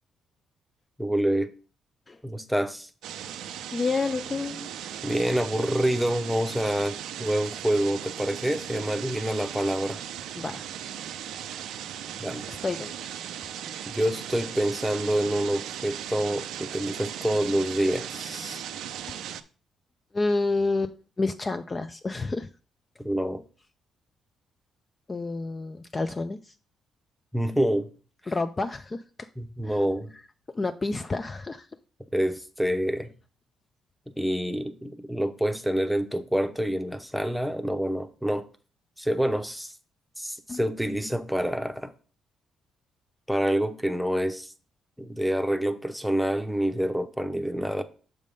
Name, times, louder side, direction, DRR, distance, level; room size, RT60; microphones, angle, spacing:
voice 1, 1.0-1.5 2.2-2.9 5.0-10.0 12.2-12.5 13.9-18.6 23.0-23.4 27.3-27.9 29.4-30.1 32.1-33.1 34.2-38.5 39.0-39.7 40.2-41.9 43.3-44.5 45.0-47.8, right 1 dB, ahead, 0.7 m, -27 dB
sound 1, 3.0-19.4, right 10 dB, 85° right, 0.4 m, -37 dB
voice 2, 3.7-4.7 10.4-10.7 12.5-13.1 19.1-19.2 20.1-22.5 25.1-26.5 28.3-29.3 29.6-29.8 30.5-31.7 40.5-40.6, left 3 dB, 25° left, 0.4 m, -29 dB
6.4 x 3.4 x 5.3 m
cardioid pair, 90°, 0 cm